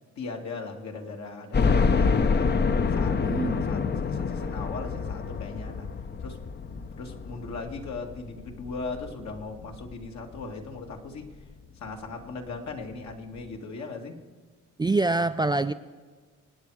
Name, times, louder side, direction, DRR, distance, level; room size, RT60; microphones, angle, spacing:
voice 1, 0.2-2.6 2.9-3.2 3.5-5.9 6.2-6.4 6.7-11.3 11.8-14.2, left 3 dB, 65° left, 2 dB, 2.2 m, -38 dB
sound 1, 1.5-10.4 10.9-11.0 11.4-11.5 12.7-12.8 13.1-13.2, left 5 dB, 35° left, 0.8 m, -27 dB
voice 2, 3.2-3.6 14.8-15.7, right 3 dB, 15° right, 10 dB, 0.4 m, -25 dB
25.5 x 9.3 x 4.9 m, 1.4 s
cardioid pair, 90°, 30 cm